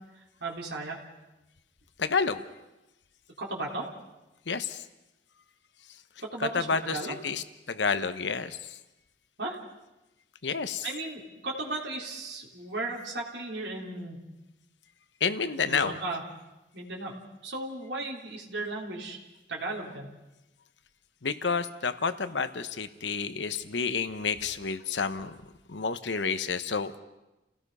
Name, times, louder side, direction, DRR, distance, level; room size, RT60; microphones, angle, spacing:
voice 1, 0.1-1.0 3.4-3.9 6.3-7.2 9.4-9.6 10.8-14.2 15.6-16.2 16.7-17.2 17.4-19.2 19.5-20.1, right 2 dB, 80° right, -3 dB, 3.6 m, -35 dB
voice 2, 2.0-2.4 4.5-4.8 6.4-7.0 7.2-8.6 10.4-10.8 15.2-15.9 21.2-25.3 25.7-26.9, left 5 dB, 90° left, 11 dB, 1.0 m, -29 dB
30.0 x 17.0 x 5.5 m, 0.99 s
head